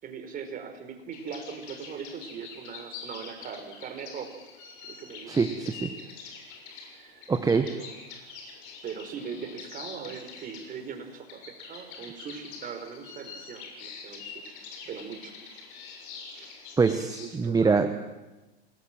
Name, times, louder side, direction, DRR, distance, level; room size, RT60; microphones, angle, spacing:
voice 1, 0.0-4.4 4.9-5.4 5.8-6.0 6.9-7.3 7.6-8.6 8.8-14.6 14.8-15.3 16.3-16.5 17.0-17.9, right 6 dB, 25° right, 6 dB, 4.9 m, -40 dB
sound 1, 1.1-17.3, left 5 dB, 50° left, 7.5 m, -45 dB
voice 2, 5.3-5.9 7.3-7.7 16.8-18.1, right 4 dB, 10° right, 8 dB, 1.1 m, -24 dB
27.5 x 20.0 x 7.7 m, 1.1 s
hypercardioid pair, 110°, 31 cm